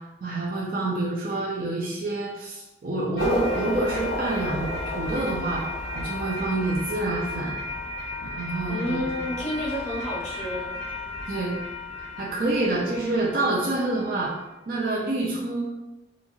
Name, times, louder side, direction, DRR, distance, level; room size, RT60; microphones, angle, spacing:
voice 1, 0.2-5.6 5.9-7.6 8.2-9.3 11.3-11.6 12.2-14.3 14.7-15.7, right 2 dB, 50° right, -4 dB, 0.5 m, -27 dB
sound 1, 3.2-14.3, left 1 dB, 85° left, 0.8 m, -33 dB
voice 2, 8.7-11.0, left 1 dB, 40° left, -5 dB, 0.6 m, -31 dB
2.9 x 2.7 x 2.4 m, 1.0 s
head